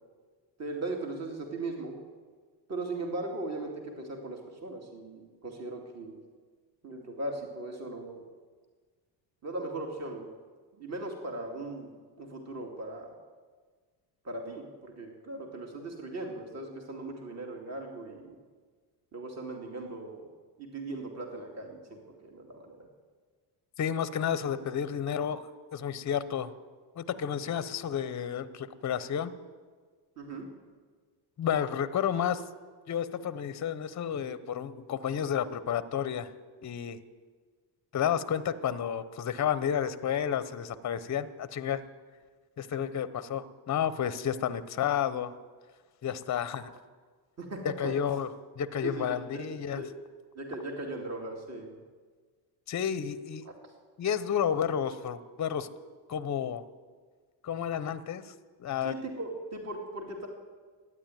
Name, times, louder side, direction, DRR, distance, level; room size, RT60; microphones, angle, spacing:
voice 1, 0.6-1.9 2.7-6.2 6.8-8.2 9.4-10.2 10.8-11.9 12.2-13.1 14.2-18.4 19.1-20.2 20.6-22.9 30.2-30.5 47.4-47.9 48.8-49.5 49.8-49.9 50.4-51.7 53.4-53.5 58.8-60.3, right 2 dB, 30° right, 2 dB, 2.5 m, -38 dB
voice 2, 23.8-26.5 27.0-29.3 31.4-32.4 32.9-36.3 36.6-37.0 37.9-41.8 42.6-45.3 46.0-46.7 47.6-48.3 48.6-49.8 52.7-53.4 54.0-55.7 56.1-56.6 57.4-58.3 58.6-59.0, left 8 dB, 35° left, 14 dB, 0.8 m, -31 dB
13.0 x 9.8 x 9.1 m, 1.5 s
supercardioid pair, 85°, 49 cm